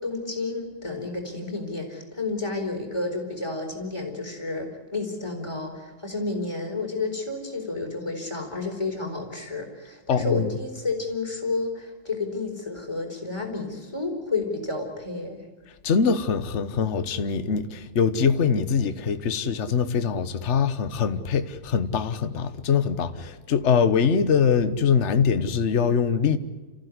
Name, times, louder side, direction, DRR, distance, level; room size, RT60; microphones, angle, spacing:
voice 1, 0.0-15.4, left 3 dB, 15° left, 4.6 m, -31 dB
voice 2, 10.1-10.5 15.8-26.4, left 6 dB, 45° left, 1.3 m, -23 dB
29.5 x 15.5 x 9.8 m
omnidirectional pair, 1.9 m